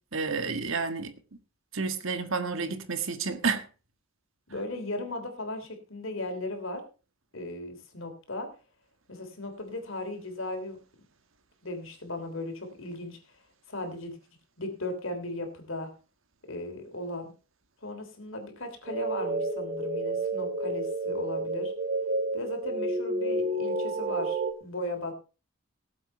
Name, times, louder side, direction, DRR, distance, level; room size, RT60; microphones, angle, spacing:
voice 1, 0.1-1.1 1.7-3.6, right 4 dB, 65° right, 1.6 m, -30 dB
voice 2, 4.5-6.8 7.3-8.5 9.1-10.8 11.6-13.2 13.7-14.2 14.6-15.9 16.5-17.3 17.8-21.7 22.3-25.1, left 2 dB, 65° left, 3.2 m, -37 dB
sound 1, 18.9-24.5, right 2 dB, 40° right, 1.1 m, -30 dB
18.5 x 7.8 x 4.3 m
head